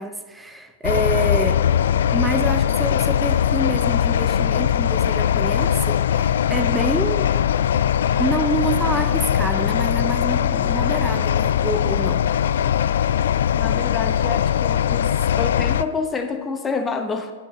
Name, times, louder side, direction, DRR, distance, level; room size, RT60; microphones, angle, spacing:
voice 1, 0.0-1.6 2.1-7.3 8.2-12.3, right 1 dB, 5° right, 7 dB, 0.8 m, -27 dB
sound 1, 0.8-15.8, left 9 dB, 60° left, 0.3 m, -20 dB
voice 2, 13.6-17.3, left 4 dB, 15° left, 6 dB, 1.0 m, -28 dB
10.5 x 8.9 x 4.3 m, 1.3 s
figure-of-eight pair, 105°, 0 cm